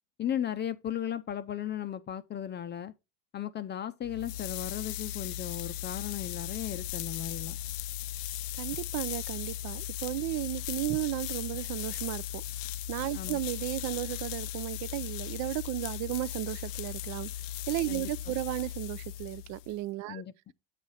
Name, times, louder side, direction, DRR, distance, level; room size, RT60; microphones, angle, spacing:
voice 1, 0.2-2.9 3.3-7.6 13.1-13.4 17.9-18.3 20.1-20.3, left 10 dB, 30° left, 0.5 m, -36 dB
sound 1, 4.0-19.8, left 12 dB, 90° left, 0.5 m, -37 dB
voice 2, 8.6-12.4 12.9-17.3 17.7-20.2, right 17 dB, 50° right, 0.5 m, -34 dB
8.3 x 4.9 x 4.1 m
supercardioid pair, 105°, 37 cm